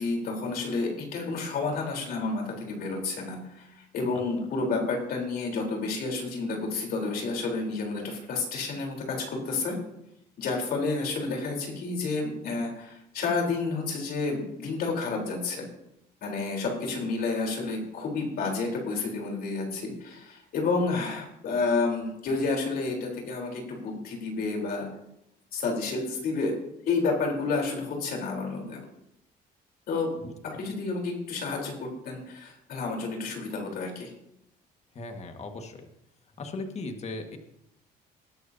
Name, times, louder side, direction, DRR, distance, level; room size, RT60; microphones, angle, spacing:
voice 1, 0.0-3.7 3.9-9.8 10.4-15.6 16.2-24.9 25.5-26.5 26.9-28.8 29.9-30.1 30.6-34.1, left 3 dB, 65° left, 0 dB, 4.0 m, -30 dB
voice 2, 35.0-35.9 36.4-37.4, left 2 dB, 40° left, 5 dB, 1.8 m, -37 dB
19.5 x 11.0 x 2.8 m, 0.80 s
cardioid pair, 110°, 17 cm